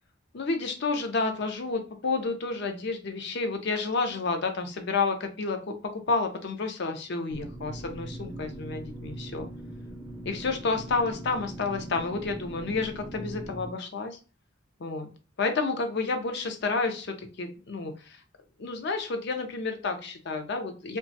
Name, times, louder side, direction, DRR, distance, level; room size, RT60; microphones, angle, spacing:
voice 1, 0.3-9.5 10.2-14.2 14.8-15.1 15.4-18.2 18.6-21.0, left 3 dB, 55° left, 6 dB, 0.5 m, -30 dB
sound 1, 7.3-13.7, right 1 dB, 20° right, 0.5 m, -41 dB
2.9 x 2.3 x 2.6 m, 0.34 s
head